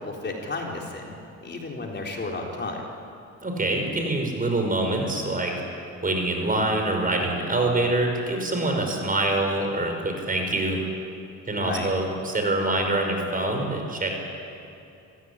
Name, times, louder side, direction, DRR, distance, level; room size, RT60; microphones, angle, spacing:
voice 1, 0.0-2.8 11.5-11.9, left 3 dB, 35° left, 0 dB, 4.1 m, -33 dB
voice 2, 3.4-5.5 6.0-10.8 11.5-14.2, right 2 dB, 30° right, 3 dB, 5.7 m, -25 dB
25.5 x 16.5 x 9.9 m, 2.6 s
cardioid pair, 90°, 30 cm